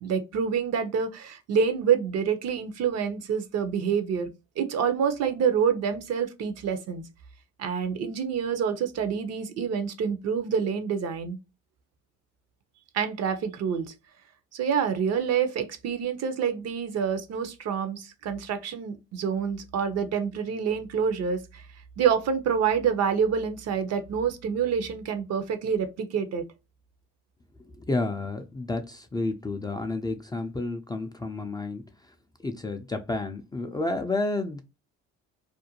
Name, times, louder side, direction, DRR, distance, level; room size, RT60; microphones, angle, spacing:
voice 1, 0.0-4.3 4.6-7.0 7.6-11.4 12.9-13.9 14.5-21.6 22.0-26.5, right 7 dB, 55° right, 0.6 m, -27 dB
voice 2, 27.8-31.8 32.4-34.6, left 2 dB, 15° left, 0.3 m, -30 dB
2.5 x 2.1 x 2.8 m
supercardioid pair, 75°, 31 cm